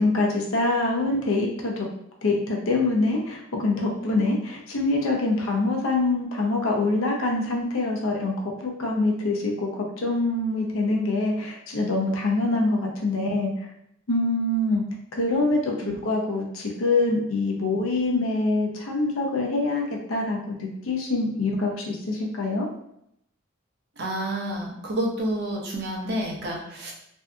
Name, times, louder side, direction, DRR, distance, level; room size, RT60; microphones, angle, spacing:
voice 1, 0.0-1.9 2.2-8.3 8.6-13.7 14.1-14.8 15.1-22.7, left 2 dB, 85° left, 0 dB, 0.6 m, -25 dB
voice 2, 24.0-26.9, right 1 dB, 50° right, -2 dB, 0.6 m, -29 dB
2.6 x 2.3 x 2.3 m, 0.76 s
head